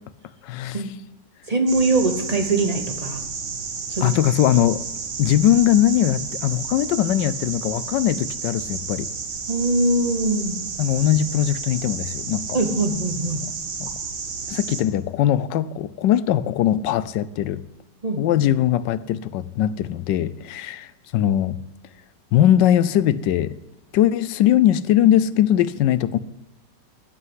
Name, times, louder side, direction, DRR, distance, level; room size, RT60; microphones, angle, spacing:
voice 1, 0.4-0.8 4.0-4.9 5.2-9.1 10.8-12.6 13.8-13.9 14.5-17.6 18.2-21.6 22.3-23.6 23.9-26.2, left 11 dB, 85° left, 1.3 m, -20 dB
voice 2, 1.5-3.2 3.9-4.1 9.5-10.6 12.5-13.5 18.0-18.2, right 2 dB, 25° right, 0.9 m, -22 dB
sound 1, 1.7-14.8, right 5 dB, 80° right, 2.1 m, -32 dB
15.0 x 5.7 x 9.6 m
omnidirectional pair, 1.9 m